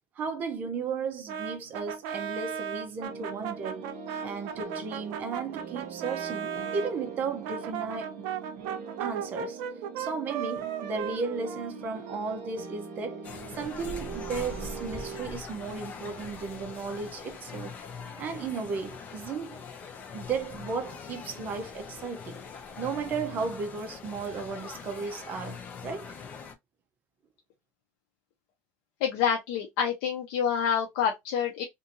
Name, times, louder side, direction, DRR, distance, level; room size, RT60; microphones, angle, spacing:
voice 1, 0.2-3.9 4.2-8.3 9.0-9.6 10.0-13.3 13.5-17.8 18.2-19.6 20.1-22.4 22.8-26.1, right 5 dB, 35° right, 0.6 m, -35 dB
Brass instrument, 1.3-6.9 7.4-12.2, right 8 dB, 75° right, 0.6 m, -36 dB
sound 1, 3.0-15.3, right 5 dB, 60° right, 1.0 m, -42 dB
sound 2, 13.2-26.5, left 5 dB, 30° left, 0.5 m, -42 dB
voice 2, 29.0-31.6, left 7 dB, 90° left, 0.6 m, -27 dB
2.7 x 2.6 x 2.6 m
cardioid pair, 170°, 5 cm